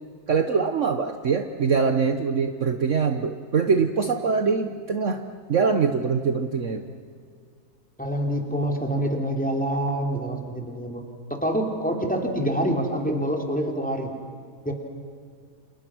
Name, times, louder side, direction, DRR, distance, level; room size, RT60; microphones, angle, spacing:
voice 1, 0.3-5.2 5.5-6.8, right 5 dB, 50° right, 6 dB, 1.4 m, -23 dB
voice 2, 8.0-11.0 11.3-14.1 14.6-14.7, right 1 dB, 5° left, 2 dB, 3.2 m, -26 dB
30.0 x 27.5 x 6.2 m, 2.1 s
omnidirectional pair, 1.7 m